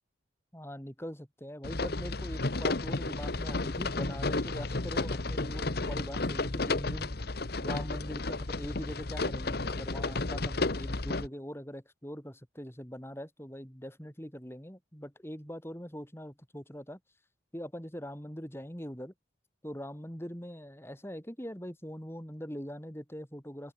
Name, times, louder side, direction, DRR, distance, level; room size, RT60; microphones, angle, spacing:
voice 1, 0.5-7.1 7.6-17.0 17.5-19.1 19.6-23.7, equal, 10° left, 4.7 m, -42 dB
sound 1, 1.6-11.3, left 2 dB, 50° left, 1.2 m, -32 dB
open air
head